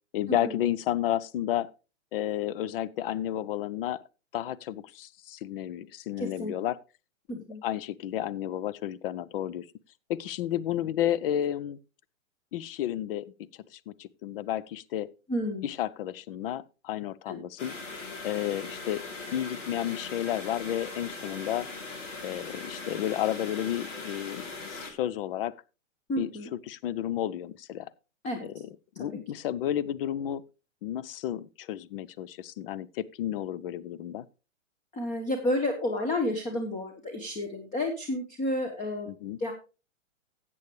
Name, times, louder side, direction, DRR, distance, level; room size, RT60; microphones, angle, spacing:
voice 1, 0.1-1.7 2.1-4.0 4.3-6.8 7.3-9.7 10.1-11.8 12.5-13.3 13.7-15.1 15.6-17.8 18.2-19.0 19.3-21.7 22.2-25.5 26.2-27.9 28.4-28.7 29.0-30.4 30.8-34.2 39.1-39.4, left 11 dB, 45° left, 0.6 m, -32 dB
voice 2, 6.2-6.5 7.3-7.6 15.3-15.7 17.3-17.4 26.1-26.5 28.2-28.5 34.9-39.1 39.4-39.5, left 1 dB, 20° left, 1.4 m, -31 dB
sound 1, 17.6-24.9, left 3 dB, 70° left, 3.2 m, -40 dB
13.5 x 8.5 x 3.1 m
hypercardioid pair, 130°, 38 cm